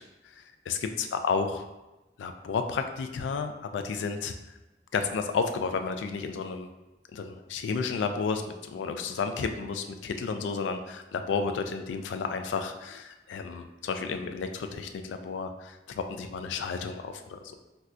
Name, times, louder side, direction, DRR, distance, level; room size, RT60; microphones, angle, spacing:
voice 1, 0.0-1.6 2.2-4.3 4.9-6.7 7.1-17.6, left 5 dB, 85° left, 7 dB, 0.3 m, -32 dB
4.2 x 2.3 x 2.4 m, 1.0 s
head